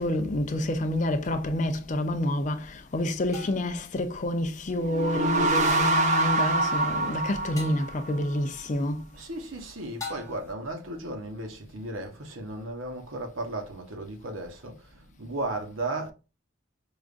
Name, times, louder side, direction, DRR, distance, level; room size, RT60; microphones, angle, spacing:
voice 1, 0.0-9.0, left 1 dB, 35° left, 0.4 m, -28 dB
sound 1, 1.2-1.4 3.3-3.8 5.7-6.0 7.6-7.9 10.0-10.6, left 4 dB, 15° left, 0.8 m, -41 dB
sound 2, 4.8-8.3, right 2 dB, 35° right, 0.5 m, -25 dB
voice 2, 9.1-16.1, right 2 dB, 75° right, 0.9 m, -35 dB
4.9 x 2.4 x 2.4 m
head